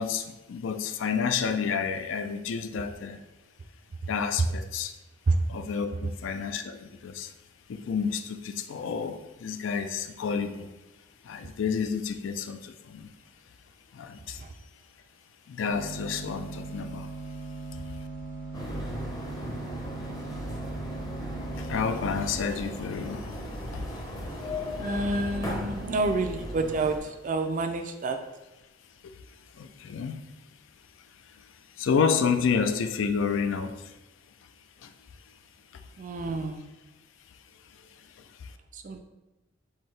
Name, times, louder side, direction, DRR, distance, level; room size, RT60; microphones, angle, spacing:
voice 1, 0.0-3.2 4.1-4.9 5.5-7.3 7.7-10.7 11.2-13.1 13.9-14.4 15.5-17.1 17.7-18.0 21.6-23.4 23.7-23.9 24.7-24.8 29.5-30.2 31.3-31.4 31.8-33.9 34.8-34.9 35.7-35.8 38.2-38.5, left 6 dB, 65° left, 9 dB, 0.3 m, -30 dB
sound 1, 15.7-22.3, right 3 dB, 45° left, 1.0 m, -39 dB
sound 2, 18.5-27.0, equal, 20° left, 0.7 m, -36 dB
voice 2, 24.8-28.2 36.0-36.7 38.7-39.0, right 3 dB, 40° right, 7 dB, 0.4 m, -28 dB
4.4 x 3.7 x 3.2 m, 1.0 s
head